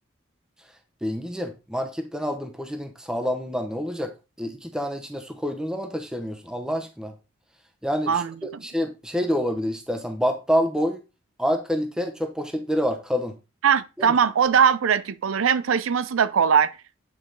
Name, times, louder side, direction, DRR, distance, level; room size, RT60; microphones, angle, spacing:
voice 1, 1.0-4.1 4.4-7.1 7.8-8.2 8.6-11.0 11.4-13.3 14.0-14.1, equal, 5° right, 0.7 m, -27 dB
voice 2, 13.6-16.7, right 7 dB, 90° right, 0.5 m, -20 dB
8.5 x 4.8 x 3.8 m
head